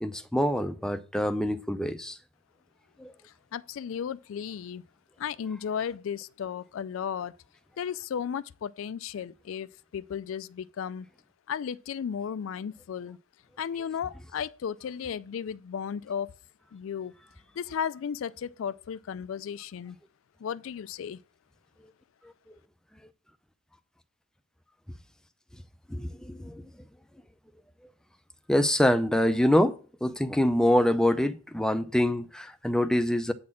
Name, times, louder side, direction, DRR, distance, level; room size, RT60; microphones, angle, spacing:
voice 1, 0.0-2.2 3.0-3.1 25.9-26.6 28.5-33.3, left 1 dB, 5° left, 0.5 m, -25 dB
voice 2, 3.2-4.8 5.2-7.4 7.8-11.1 11.5-13.2 13.6-16.3 16.7-17.1 17.6-20.0 20.4-21.2, left 7 dB, 70° left, 0.3 m, -34 dB
8.5 x 4.2 x 7.1 m
head